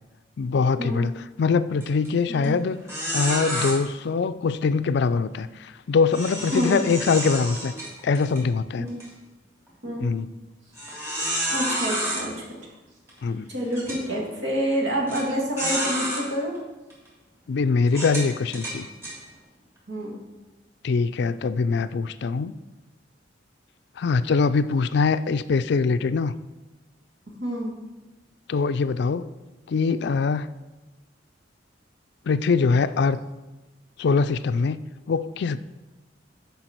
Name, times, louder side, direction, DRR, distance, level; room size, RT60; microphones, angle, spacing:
voice 1, 0.4-2.8 3.1-7.7 8.0-8.9 10.0-10.3 13.2-13.5 17.5-18.9 20.8-22.6 24.0-26.3 28.5-29.3 29.7-30.5 32.3-33.2 34.0-34.8 35.1-35.6, left 4 dB, 60° left, 13 dB, 0.4 m, -23 dB
sound 1, 1.8-2.1 2.4-2.5 2.9-3.7 6.1-8.4 8.9-9.0 9.7-9.8 10.8-12.2 13.1-13.2 13.7-14.0 15.1-15.2 15.6-16.2 16.9-17.1 17.9-19.1, right 1 dB, 15° right, 2.9 m, -29 dB
voice 2, 11.5-12.5 13.5-16.5 19.9-20.2 27.4-27.7, equal, 75° right, -1 dB, 2.3 m, -27 dB
10.0 x 5.6 x 4.5 m, 1.1 s
head